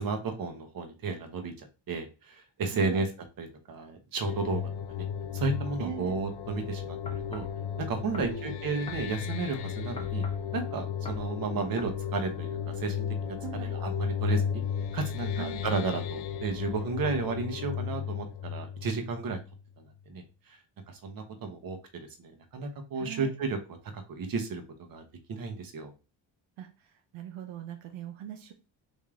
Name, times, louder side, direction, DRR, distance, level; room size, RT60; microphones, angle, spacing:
voice 1, 0.0-3.1 3.4-4.6 4.9-5.1 5.3-7.5 7.8-10.2 10.5-14.6 14.9-19.4 19.8-20.6 20.9-21.8 22.2-24.6 24.9-25.9, right 4 dB, 45° right, 5 dB, 0.9 m, -33 dB
voice 2, 2.7-3.0 5.8-6.2 8.2-8.6 13.4-13.8 15.4-15.6 23.0-23.3 26.6-26.7 27.1-28.5, right 12 dB, 80° right, 5 dB, 0.7 m, -40 dB
sound 1, 4.2-19.7, left 8 dB, 85° left, 0.6 m, -34 dB
sound 2, 7.1-7.6 8.1-8.4 8.9-9.1 10.0-10.5 11.1-11.3 11.8-12.0, left 2 dB, 15° left, 0.5 m, -44 dB
3.4 x 2.7 x 3.5 m, 0.31 s
cardioid pair, 90°, 47 cm